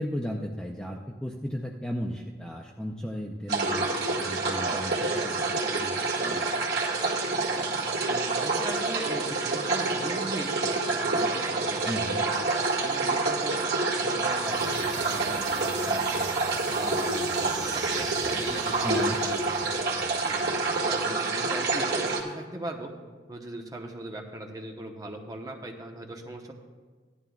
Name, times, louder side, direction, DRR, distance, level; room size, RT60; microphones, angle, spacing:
voice 1, 0.0-5.3 5.7-5.9 6.2-6.4 11.9-12.2 18.8-19.2, equal, 5° left, 0 dB, 0.5 m, -35 dB
sound 1, 3.5-22.2, right 3 dB, 70° right, 1.8 m, -28 dB
voice 2, 8.0-11.9 12.4-16.3 16.7-22.9 23.3-26.5, right 1 dB, 20° right, 2 dB, 0.9 m, -39 dB
sound 2, 14.2-21.0, right 4 dB, 45° right, 1.0 m, -41 dB
16.0 x 11.0 x 2.3 m, 1.4 s
head